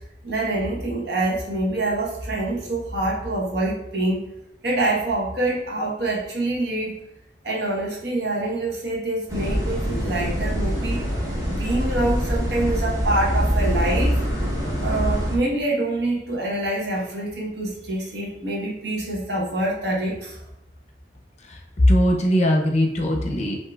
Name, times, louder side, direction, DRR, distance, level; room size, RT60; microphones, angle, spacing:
voice 1, 0.2-4.3 4.6-7.0 7.4-11.0 11.5-14.2 14.8-20.4, right 2 dB, 65° right, -2 dB, 1.1 m, -25 dB
sound 1, 9.3-15.4, equal, 20° right, 0.9 m, -24 dB
voice 2, 21.9-23.6, equal, 40° left, 2 dB, 0.6 m, -20 dB
8.0 x 2.7 x 2.3 m, 0.82 s
head